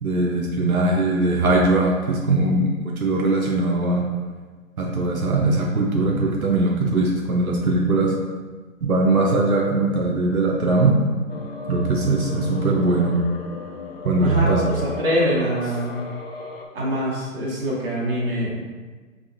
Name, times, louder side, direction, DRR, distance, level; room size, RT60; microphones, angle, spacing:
voice 1, 0.0-4.0 4.8-8.1 8.8-11.0 11.7-13.2 14.0-14.8, right 2 dB, 85° right, -2 dB, 0.8 m, -20 dB
sound 1, 11.3-16.7, left 4 dB, 45° left, 0.5 m, -36 dB
voice 2, 14.2-14.6 15.0-16.1 16.7-18.6, equal, 40° right, -5 dB, 1.3 m, -24 dB
4.9 x 3.0 x 2.6 m, 1.4 s
figure-of-eight pair, 135°, 42 cm